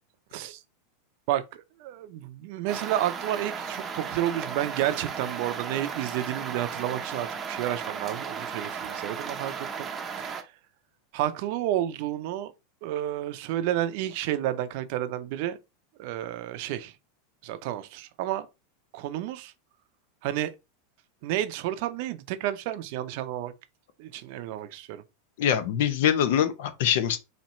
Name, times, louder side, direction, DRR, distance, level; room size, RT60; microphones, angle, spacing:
voice 1, 1.3-9.9 10.2-10.5 11.1-12.5 12.8-15.6 16.0-16.9 17.4-18.5 18.9-19.5 20.2-20.5 21.2-23.5 24.0-25.0, right 13 dB, 60° right, 0.6 m, -31 dB
sound 1, 2.7-10.4, right 6 dB, 25° right, 0.7 m, -35 dB
voice 2, 25.4-27.2, left 9 dB, 70° left, 0.8 m, -24 dB
4.3 x 2.9 x 4.2 m
supercardioid pair, 135°, 0 cm